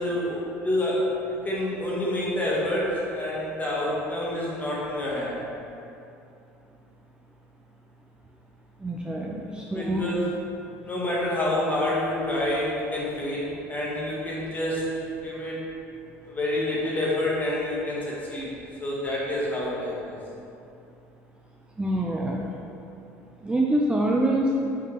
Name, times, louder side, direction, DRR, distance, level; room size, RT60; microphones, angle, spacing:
voice 1, 0.0-5.4 9.7-10.2 10.8-15.6 16.3-18.5 18.8-20.1, left 1 dB, 25° left, -5 dB, 1.3 m, -28 dB
voice 2, 8.8-10.0 21.8-22.5 23.4-24.5, right 1 dB, 15° right, -2 dB, 0.4 m, -25 dB
4.9 x 3.2 x 2.9 m, 2.7 s
hypercardioid pair, 75°, 7 cm